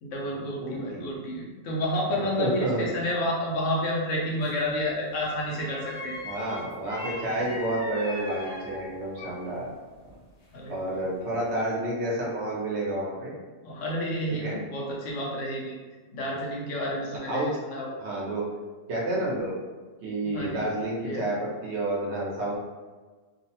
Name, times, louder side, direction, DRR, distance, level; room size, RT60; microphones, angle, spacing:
voice 1, 0.0-6.2 7.4-7.5 10.5-10.8 13.6-15.8 16.1-18.0 20.2-20.6 21.0-21.2, left 1 dB, 80° left, -3 dB, 1.0 m, -30 dB
voice 2, 0.6-1.0 2.1-2.9 6.2-9.7 10.7-13.3 14.3-14.6 17.3-17.6 18.0-18.5 18.9-19.6 20.0-22.6, right 1 dB, 65° right, -4 dB, 1.0 m, -30 dB
sound 1, 4.4-4.7 5.6-9.6 9.9-10.9 11.3-11.5, left 1 dB, 40° left, 0.7 m, -40 dB
3.0 x 2.0 x 2.8 m, 1.4 s
omnidirectional pair, 1.3 m